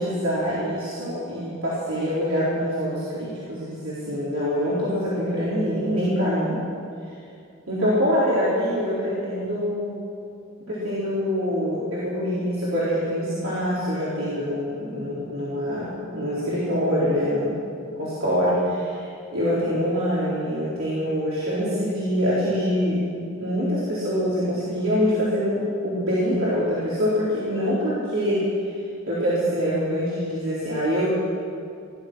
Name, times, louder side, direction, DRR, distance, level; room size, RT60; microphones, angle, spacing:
voice 1, 0.0-6.6 7.7-10.0 10.7-17.6 18.0-23.0 23.4-28.5 29.1-31.1, equal, 80° right, -10 dB, 4.1 m, -25 dB
18.0 x 12.0 x 6.3 m, 2.4 s
head